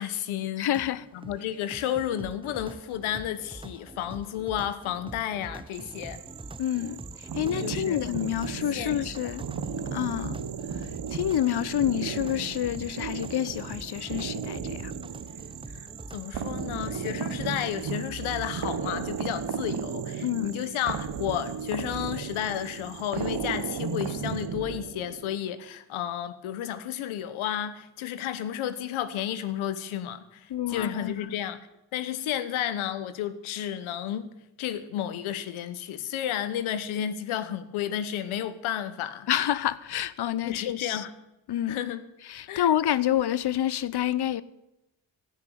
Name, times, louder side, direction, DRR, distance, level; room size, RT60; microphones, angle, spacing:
voice 1, 0.0-0.7 1.1-6.2 7.6-8.0 8.5-9.3 15.7-15.9 16.1-31.6 31.9-34.3 34.6-39.3 40.4-41.1 41.7-42.0 42.5-42.7, left 10 dB, 80° left, 1.1 m, -32 dB
voice 2, 0.6-1.0 6.6-9.4 9.9-10.4 11.1-14.9 20.2-20.5 30.5-31.3 39.3-41.0 41.5-41.8 42.3-44.4, left 11 dB, 55° left, 0.8 m, -28 dB
sound 1, 0.6-17.5, right 2 dB, 10° right, 0.9 m, -44 dB
sound 2, 5.7-24.5, right 13 dB, 90° right, 1.0 m, -47 dB
sound 3, 7.3-25.4, right 6 dB, 55° right, 1.6 m, -35 dB
15.5 x 6.5 x 9.2 m
hypercardioid pair, 45°, 48 cm